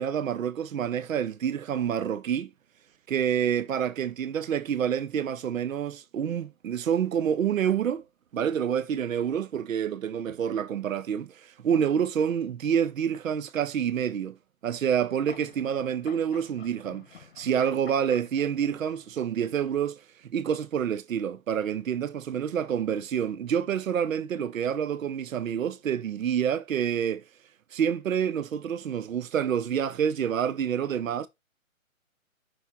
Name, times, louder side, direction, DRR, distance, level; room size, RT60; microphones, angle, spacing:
voice 1, 0.0-2.5 3.1-8.0 8.3-14.4 14.6-27.2 27.7-31.3, right 8 dB, 70° right, 0.7 m, -28 dB
sound 1, 14.7-19.4, left 8 dB, 45° left, 1.0 m, -50 dB
6.2 x 3.6 x 4.5 m
hypercardioid pair, 145°, 41 cm